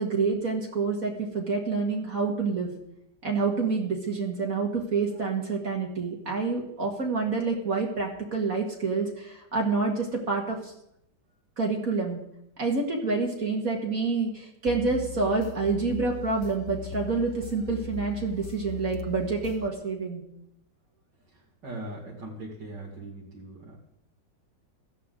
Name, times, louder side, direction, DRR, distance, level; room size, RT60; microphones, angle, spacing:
voice 1, 0.0-2.7 3.2-10.7 11.6-12.2 12.6-20.2, right 4 dB, 50° right, 0 dB, 2.4 m, -28 dB
sound 1, 14.7-19.7, left 10 dB, 60° left, 0.8 m, -39 dB
voice 2, 21.3-23.8, right 2 dB, 75° right, -4 dB, 2.8 m, -40 dB
17.0 x 13.0 x 3.9 m, 0.78 s
omnidirectional pair, 1.9 m